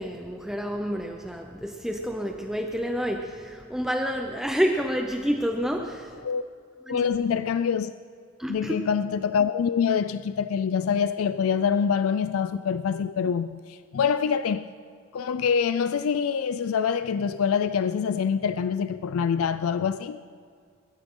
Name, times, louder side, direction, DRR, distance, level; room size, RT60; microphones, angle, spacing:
voice 1, 0.0-6.2 6.9-7.1 8.4-8.7, equal, ahead, 0.7 m, -29 dB
voice 2, 6.9-7.9 8.5-14.7 15.1-20.2, left 7 dB, 90° left, 0.4 m, -25 dB
22.5 x 12.5 x 3.8 m
head